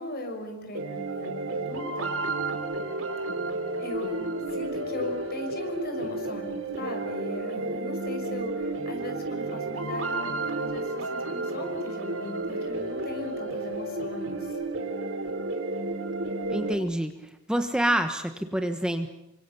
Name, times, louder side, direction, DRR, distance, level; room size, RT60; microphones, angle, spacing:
voice 1, 0.0-2.1 3.8-14.5, left 1 dB, 50° left, 5 dB, 6.2 m, -38 dB
sound 1, 0.7-16.7, right 2 dB, 70° right, 3.0 m, -32 dB
voice 2, 16.5-17.1 17.5-19.1, right 1 dB, 5° right, 6 dB, 1.1 m, -27 dB
28.5 x 25.0 x 7.0 m, 0.87 s
head